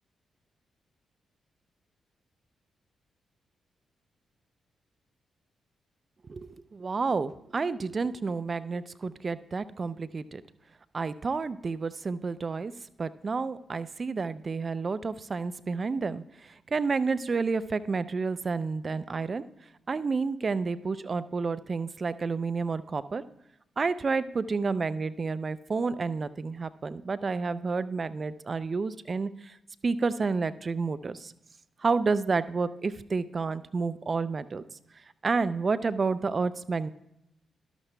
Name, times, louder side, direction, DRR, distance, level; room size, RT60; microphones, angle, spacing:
voice 1, 6.2-10.4 10.9-12.7 13.0-19.4 19.9-23.2 23.8-29.6 29.8-31.3 31.8-34.6 35.2-36.9, right 4 dB, 45° right, 15 dB, 0.5 m, -30 dB
13.0 x 12.0 x 2.3 m, 0.84 s
hypercardioid pair, 40°, 0 cm